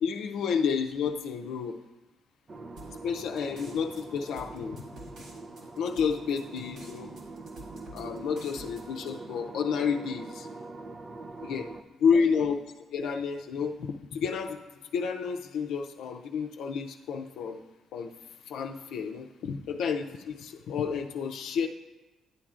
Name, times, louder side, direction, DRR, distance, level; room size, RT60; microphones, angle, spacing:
voice 1, 0.0-1.8 3.0-4.9 5.8-7.1 7.9-10.5 11.4-11.7 12.0-14.6 14.9-17.6 17.9-18.1 18.4-21.7, left 6 dB, 80° left, 3 dB, 0.5 m, -30 dB
sound 1, 2.5-11.8, right 3 dB, 40° right, 0.5 m, -44 dB
sound 2, 2.8-9.1, right 1 dB, 80° right, 2.0 m, -50 dB
11.5 x 8.5 x 2.5 m, 1.1 s
cardioid pair, 90°, 0 cm